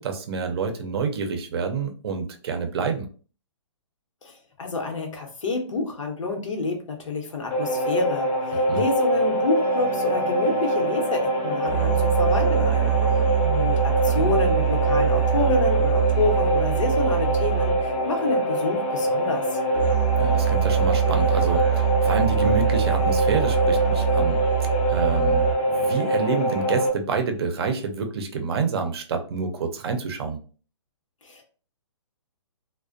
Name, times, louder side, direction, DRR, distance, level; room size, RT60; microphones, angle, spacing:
voice 1, 0.0-3.1 8.7-8.8 20.2-24.4 24.9-30.4, right 5 dB, 55° right, 6 dB, 0.5 m, -28 dB
voice 2, 4.2-12.9 13.4-19.6 31.2-31.4, left 3 dB, 90° left, 3 dB, 0.8 m, -28 dB
sound 1, 7.5-26.9, equal, 30° left, 0.4 m, -24 dB
sound 2, 9.5-25.5, right 10 dB, 10° right, 0.6 m, -25 dB
2.4 x 2.1 x 2.4 m, 0.39 s
hypercardioid pair, 160°, 16 cm